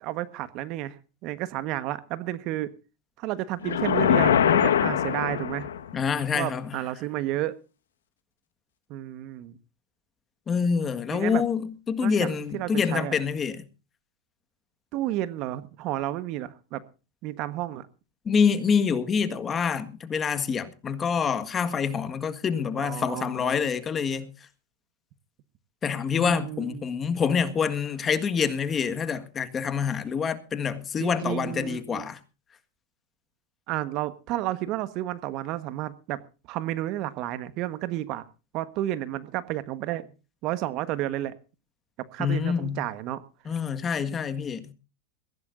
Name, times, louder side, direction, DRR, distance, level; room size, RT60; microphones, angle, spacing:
voice 1, 0.0-1.0 1.2-2.7 3.2-5.7 6.3-7.5 8.9-9.6 11.1-11.4 12.0-12.1 12.5-13.1 14.9-16.8 17.2-17.9 22.8-23.5 26.2-26.8 31.0-32.1 33.7-36.2 36.5-38.2 38.5-40.1 40.4-41.3 42.1-43.2, right 14 dB, 50° right, 1.3 m, -31 dB
sound 1, 3.6-6.0, left 9 dB, 85° left, 1.4 m, -22 dB
voice 2, 5.9-6.8 10.5-13.6 18.3-24.3 25.8-32.2 42.2-42.8 43.5-44.7, left 6 dB, 25° left, 1.6 m, -26 dB
22.0 x 16.0 x 2.6 m
hypercardioid pair, 110°, 0 cm